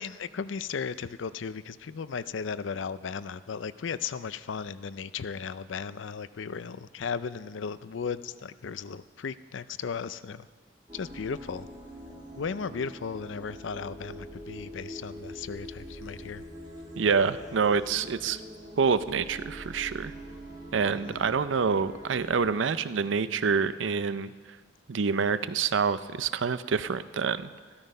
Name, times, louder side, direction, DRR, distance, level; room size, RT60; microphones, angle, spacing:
voice 1, 0.0-10.5 10.9-11.7 12.4-16.4 20.9-21.3, left 6 dB, 85° left, 15 dB, 0.5 m, -36 dB
sound 1, 10.9-22.6, equal, 20° right, 1.8 m, -44 dB
voice 2, 17.0-18.4 18.8-20.1 20.7-24.3 24.9-27.5, right 5 dB, 85° right, 14 dB, 0.5 m, -27 dB
14.0 x 13.0 x 5.5 m, 1.5 s
head